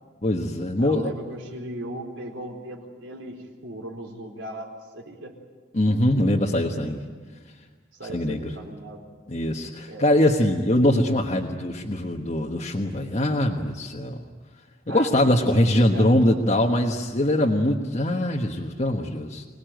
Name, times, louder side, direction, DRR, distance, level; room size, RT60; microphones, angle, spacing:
voice 1, 0.2-1.1 5.7-7.0 8.1-8.5 9.3-14.2 14.9-19.4, left 1 dB, 35° left, -1 dB, 1.3 m, -22 dB
voice 2, 0.8-3.4 3.6-5.3 8.0-9.0 9.9-10.1 14.9-16.2, right 1 dB, 90° right, 1 dB, 4.5 m, -37 dB
26.5 x 19.0 x 9.2 m, 1.5 s
head